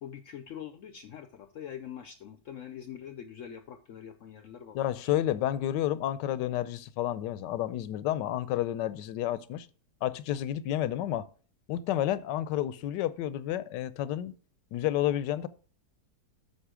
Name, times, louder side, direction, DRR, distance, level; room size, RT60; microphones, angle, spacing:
voice 1, 0.0-5.1, left 9 dB, 70° left, 0.7 m, -44 dB
voice 2, 4.7-9.7 10.0-11.3 11.7-14.3 14.7-15.5, left 12 dB, 85° left, 1.2 m, -30 dB
8.2 x 5.7 x 4.9 m
omnidirectional pair, 1.8 m